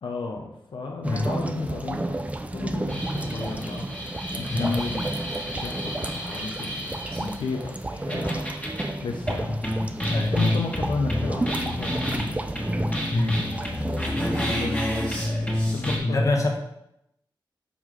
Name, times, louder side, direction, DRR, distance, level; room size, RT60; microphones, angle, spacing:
voice 1, 0.0-2.2 2.5-3.9 4.4-8.5 9.0-9.6 10.3-12.4 14.5-15.2 15.7-16.3, left 4 dB, 75° left, 1 dB, 0.8 m, -33 dB
sound 1, 1.0-14.6, right 1 dB, 15° right, 0.5 m, -32 dB
sound 2, 2.9-7.4 8.1-8.9 9.2-16.0, left 1 dB, 15° left, 1.8 m, -29 dB
voice 2, 16.0-16.5, left 2 dB, 40° left, 1 dB, 1.2 m, -24 dB
7.1 x 3.8 x 4.7 m, 0.81 s
wide cardioid pair, 125°, 8 cm